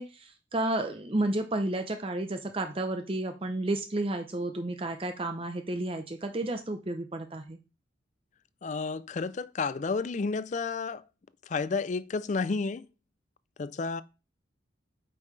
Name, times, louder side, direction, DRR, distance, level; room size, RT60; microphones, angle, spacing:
voice 1, 0.0-7.6, right 1 dB, 30° right, 0.7 m, -31 dB
voice 2, 8.6-11.0 11.4-12.9 13.6-14.0, left 4 dB, 40° left, 0.4 m, -31 dB
8.5 x 5.4 x 3.2 m
head